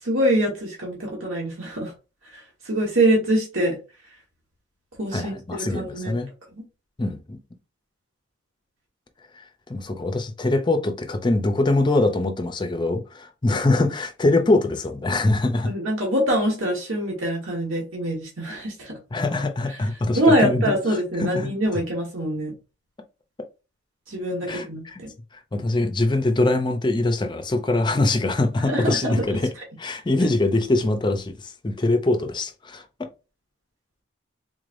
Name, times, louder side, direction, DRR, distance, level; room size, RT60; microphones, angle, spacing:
voice 1, 0.0-1.9 2.3-3.8 5.0-6.1 15.6-19.0 20.1-22.5 24.1-25.1 28.7-29.4, right 1 dB, 80° right, 1.3 m, -24 dB
voice 2, 5.1-6.3 7.0-7.4 9.4-9.5 9.7-15.7 19.1-20.8 21.2-21.5 24.5-25.0 25.5-29.5 29.8-33.1, left 2 dB, 20° left, 0.4 m, -23 dB
3.8 x 3.2 x 2.5 m
head